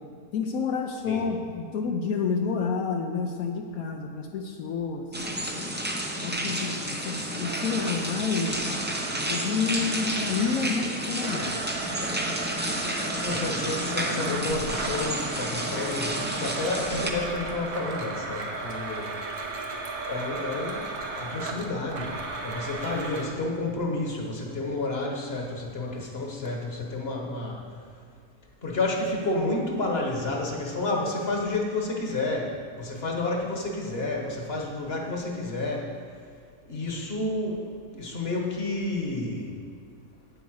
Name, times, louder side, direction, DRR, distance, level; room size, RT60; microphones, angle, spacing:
voice 1, 0.3-5.1 6.2-8.6 9.2-11.6, left 5 dB, 70° left, 3 dB, 1.0 m, -29 dB
sound 1, 5.1-17.1, equal, 15° right, 0.3 m, -31 dB
Domestic sounds home sounds, 7.4-10.8 11.2-23.2, right 3 dB, 70° right, 1.4 m, -35 dB
voice 2, 12.8-19.2 20.0-20.9 21.2-22.2 22.4-27.6 28.6-35.9 36.7-37.7 37.9-39.5, left 2 dB, 45° left, 0 dB, 1.4 m, -30 dB
8.7 x 8.2 x 4.7 m, 2.3 s
omnidirectional pair, 1.6 m